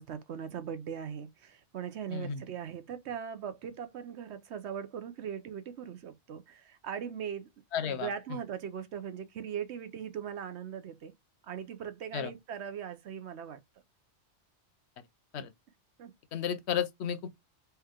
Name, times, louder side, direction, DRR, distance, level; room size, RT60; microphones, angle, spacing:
voice 1, 0.0-7.5 7.8-11.1 11.4-13.6 16.0-16.1, right 8 dB, 70° right, 1.0 m, -40 dB
voice 2, 2.1-2.4 7.7-8.1 12.1-12.3 15.3-15.5 16.3-17.3, left 8 dB, 70° left, 0.9 m, -32 dB
3.5 x 2.9 x 3.4 m
omnidirectional pair, 1.2 m